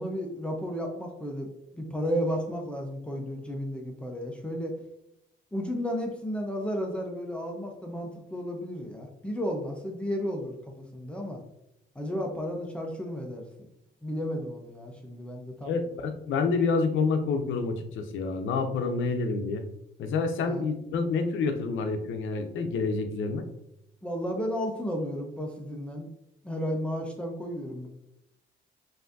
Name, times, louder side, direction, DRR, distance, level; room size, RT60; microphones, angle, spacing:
voice 1, 0.0-1.5 1.7-4.7 5.5-11.4 11.9-13.5 14.0-15.7 20.5-20.6 24.0-26.1 26.4-27.9, equal, 5° left, 0 dB, 0.7 m, -33 dB
voice 2, 15.6-19.6 20.0-23.4, left 4 dB, 75° left, 7 dB, 0.6 m, -28 dB
5.7 x 2.7 x 2.6 m, 0.84 s
cardioid pair, 90°, 20 cm